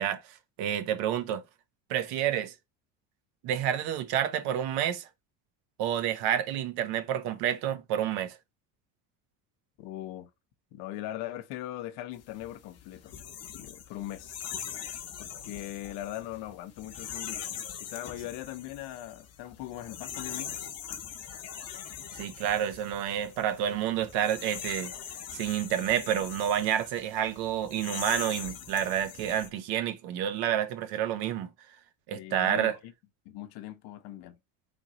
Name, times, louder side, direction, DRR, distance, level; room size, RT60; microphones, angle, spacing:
voice 1, 0.0-1.4 1.9-2.5 3.4-5.1 5.8-8.4 22.1-24.9 25.3-31.5 32.1-32.7, right 10 dB, 75° right, 0.8 m, -29 dB
voice 2, 9.8-10.3 10.7-13.2 13.5-14.4 15.2-17.5 17.8-20.6 32.1-32.9 33.2-34.4, left 13 dB, 75° left, 0.7 m, -40 dB
sound 1, 12.2-29.5, left 8 dB, 40° left, 0.8 m, -42 dB
3.8 x 3.5 x 2.9 m
cardioid pair, 125°, 39 cm